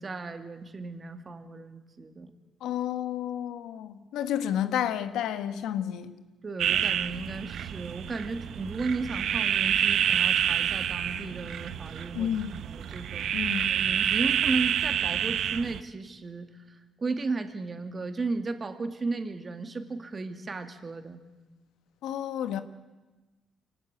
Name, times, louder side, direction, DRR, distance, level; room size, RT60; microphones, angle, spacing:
voice 1, 0.0-2.3 6.4-13.3 13.7-21.2, right 3 dB, 35° right, 2.4 m, -35 dB
voice 2, 2.6-6.1 12.1-12.6 13.3-13.8 22.0-22.6, left 10 dB, 85° left, 1.3 m, -31 dB
sound 1, 6.6-15.8, right 9 dB, 70° right, 1.0 m, -28 dB
24.0 x 17.5 x 9.7 m
cardioid pair, 90°, 0 cm